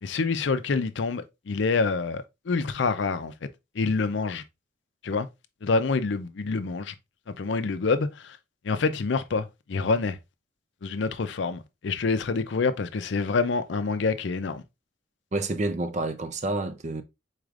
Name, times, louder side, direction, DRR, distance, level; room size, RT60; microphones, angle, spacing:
voice 1, 0.0-3.3 3.8-4.4 5.0-5.3 5.6-6.9 7.4-8.4 8.6-10.2 10.8-14.6, left 4 dB, 65° left, 0.5 m, -27 dB
voice 2, 15.3-17.0, right 2 dB, 35° right, 0.5 m, -29 dB
4.9 x 4.0 x 2.4 m
head